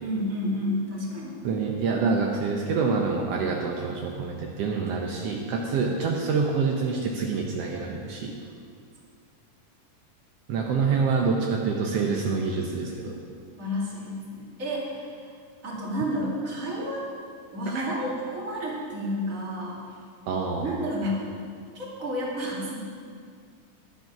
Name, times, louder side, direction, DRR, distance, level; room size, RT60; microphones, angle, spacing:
voice 1, 0.0-1.4 13.5-15.2 15.6-17.1 17.5-19.8 20.6-21.3 21.7-22.9, equal, 30° right, -4 dB, 1.9 m, -30 dB
voice 2, 1.4-8.3 10.5-13.2 17.7-17.9 20.3-20.7, right 4 dB, 80° right, 0 dB, 1.4 m, -26 dB
11.0 x 9.3 x 5.9 m, 2.2 s
omnidirectional pair, 4.0 m